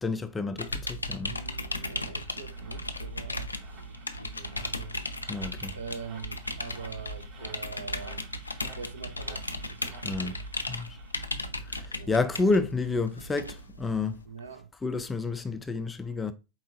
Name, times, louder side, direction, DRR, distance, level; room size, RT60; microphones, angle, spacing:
voice 1, 0.0-1.4 5.3-5.8 10.0-10.4 10.7-11.0 11.6-14.2 14.8-16.3, left 3 dB, 10° left, 0.4 m, -30 dB
sound 1, 0.6-14.3, left 1 dB, 80° left, 0.4 m, -36 dB
voice 2, 1.2-5.0 5.7-8.3 8.8-10.4 11.9-12.1 14.3-14.7, right 5 dB, 70° right, 0.6 m, -44 dB
sound 2, 1.4-11.4, right 4 dB, 40° right, 0.9 m, -53 dB
4.5 x 3.7 x 2.5 m
figure-of-eight pair, 90°, 0 cm